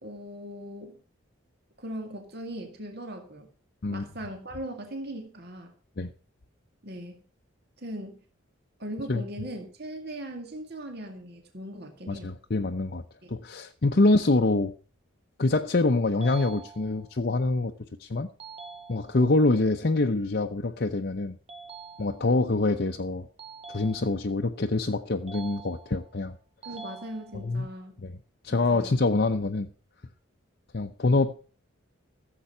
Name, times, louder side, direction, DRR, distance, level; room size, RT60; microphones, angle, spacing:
voice 1, 0.0-1.0 1.8-3.5 3.9-5.7 6.8-7.2 7.8-8.2 8.8-12.3 13.2-13.3 26.7-28.0 28.5-29.0, right 1 dB, 50° right, 2.1 m, -39 dB
voice 2, 12.1-13.0 13.3-14.7 15.4-17.7 18.0-18.3 18.9-21.4 22.0-23.3 23.7-26.4 27.3-27.7 28.0-28.2 28.4-29.7 30.7-31.4, left 2 dB, 50° left, 0.7 m, -25 dB
sound 1, 16.2-17.2 18.4-19.4 21.5-22.5 23.4-24.5 25.3-26.2 26.6-27.6, right 5 dB, 30° right, 1.1 m, -45 dB
15.0 x 7.7 x 5.5 m
head